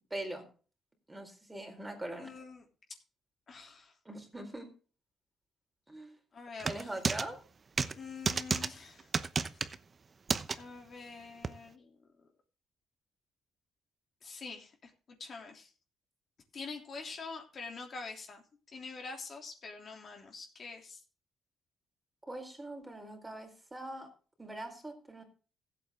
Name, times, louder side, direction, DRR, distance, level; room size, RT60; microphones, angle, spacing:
voice 1, 0.1-0.5 1.1-2.3 4.0-4.7 5.9-6.1 6.6-7.4 22.3-24.1 24.4-25.2, right 1 dB, 15° right, 3 dB, 4.4 m, -42 dB
voice 2, 2.2-2.7 3.5-3.9 6.3-6.9 8.0-9.1 10.6-11.9 14.2-14.9 15.2-15.7 16.5-18.4 18.7-21.0, left 4 dB, 50° left, 2 dB, 3.1 m, -45 dB
sound 1, 6.6-7.3 7.8-7.9 8.3-8.7 9.1-9.8 10.3-10.6 11.4-11.5, right 5 dB, 35° right, 0.9 m, -31 dB
15.5 x 8.4 x 3.8 m, 0.37 s
cardioid pair, 90°, 0 cm